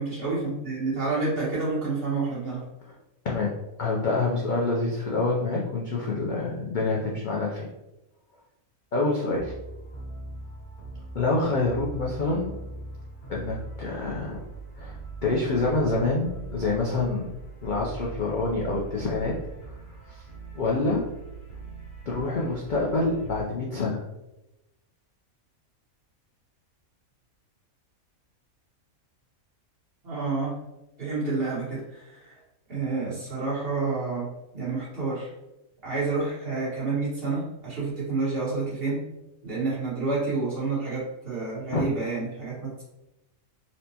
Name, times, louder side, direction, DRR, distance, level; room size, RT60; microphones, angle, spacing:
voice 1, 0.0-2.6 30.0-30.5 31.0-32.4 32.7-35.3 35.8-39.0 39.4-42.8, right 3 dB, 45° right, -8 dB, 1.5 m, -29 dB
voice 2, 3.2-7.7 8.9-9.5 11.1-12.6 13.3-14.4 14.8-15.0 15.2-17.3 17.6-19.4 19.7-19.8 20.1-20.2 20.6-21.1 22.1-24.0 41.7-41.8, left 3 dB, 75° left, -4 dB, 0.4 m, -27 dB
sound 1, 9.3-23.4, right 3 dB, 90° left, 1.7 m, -41 dB
4.3 x 2.2 x 2.8 m, 0.95 s
omnidirectional pair, 1.5 m